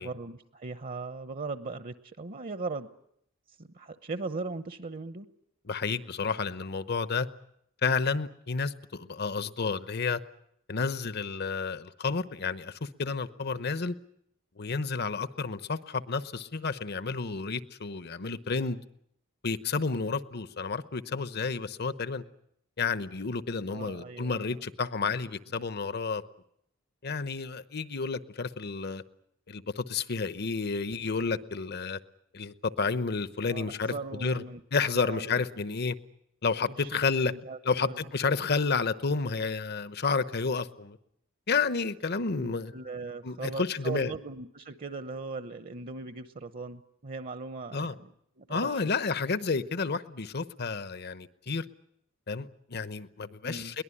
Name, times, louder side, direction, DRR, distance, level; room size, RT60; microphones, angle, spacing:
voice 1, 0.0-2.9 3.6-5.3 23.7-24.5 33.5-34.6 34.9-35.4 36.8-38.0 42.3-48.1 48.4-48.7 53.4-53.7, right 3 dB, 45° right, 0.9 m, -39 dB
voice 2, 5.6-7.3 7.8-10.2 10.7-13.9 14.6-18.8 19.4-22.2 22.8-26.2 27.0-29.0 29.5-32.0 32.3-34.4 34.7-36.0 36.4-37.3 37.6-41.0 41.5-42.7 43.2-44.1 47.7-48.0 48.5-51.6 52.3-53.8, left 4 dB, 55° left, 0.9 m, -31 dB
22.5 x 19.0 x 9.9 m
head